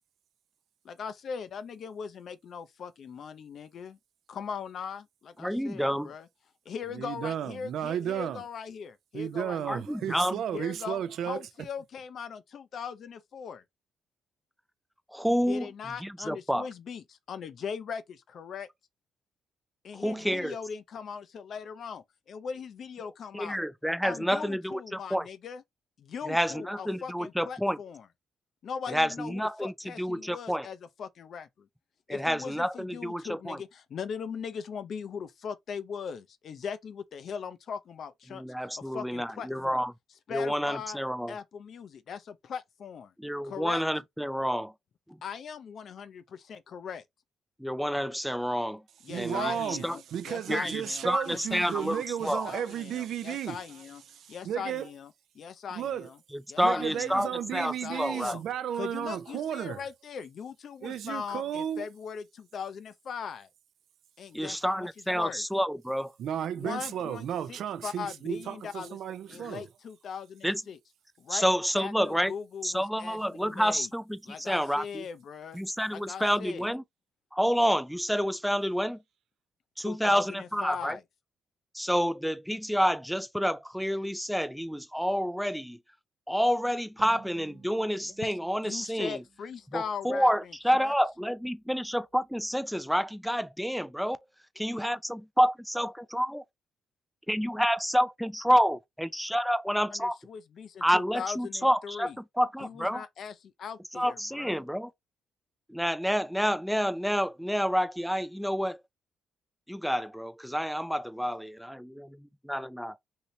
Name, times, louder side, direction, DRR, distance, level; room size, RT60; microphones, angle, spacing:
voice 1, 0.8-4.0 4.3-6.3 6.7-9.8 10.5-13.6 15.5-18.7 19.8-23.6 24.0-25.6 26.0-28.0 28.6-31.7 32.1-39.8 40.3-41.0 41.3-43.1 43.4-43.8 45.2-47.0 49.0-54.0 54.3-56.2 56.5-58.4 58.7-63.5 64.2-65.4 66.6-69.0 69.3-70.8 71.2-71.5 71.8-73.9 74.3-75.6 75.9-76.7 79.8-81.0 88.0-88.3 88.6-90.9 99.9-102.2 102.6-104.6, left 6 dB, 60° left, 0.5 m, -40 dB
voice 2, 5.4-6.1 9.7-10.4 15.1-15.7 16.0-16.7 19.9-20.6 23.3-25.3 26.2-27.8 28.9-30.7 32.1-33.6 38.3-39.9 40.3-41.3 43.2-44.7 45.1-45.2 47.6-48.8 49.1-50.0 50.5-52.5 56.3-58.4 64.3-66.1 70.4-70.6 71.3-72.3 72.6-75.1 75.5-76.8 77.3-79.0 79.8-81.0 81.7-85.8 86.3-89.2 89.7-94.2 94.6-96.4 97.3-100.2 100.8-103.0 103.9-104.9 105.7-108.8 109.7-113.0, equal, ahead, 0.4 m, -29 dB
voice 3, 6.9-8.4 9.1-11.4 49.1-49.8 50.1-53.6 54.1-54.9 55.7-56.1 56.6-59.8 60.8-61.9 66.2-69.7, right 9 dB, 70° right, 0.4 m, -33 dB
sound 1, 87.0-90.5, right 5 dB, 40° right, 0.7 m, -55 dB
2.8 x 2.6 x 3.1 m
cardioid pair, 90°, 0 cm